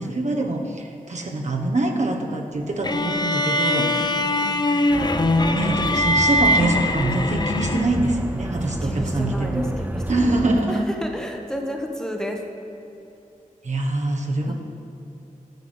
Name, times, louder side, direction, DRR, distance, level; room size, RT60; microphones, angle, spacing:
voice 1, 0.0-3.9 5.5-9.6 10.1-10.9 13.6-14.5, right 2 dB, 55° right, 1 dB, 1.1 m, -24 dB
sound 1, 2.8-8.1, left 1 dB, 30° left, 0.6 m, -22 dB
voice 2, 3.9-5.1 8.6-10.3 10.7-12.4 14.5-14.6, equal, 5° left, 2 dB, 1.1 m, -32 dB
sound 2, 4.9-10.6, right 1 dB, 10° right, 0.6 m, -30 dB
9.5 x 4.8 x 7.8 m, 2.9 s
cardioid pair, 40°, 14 cm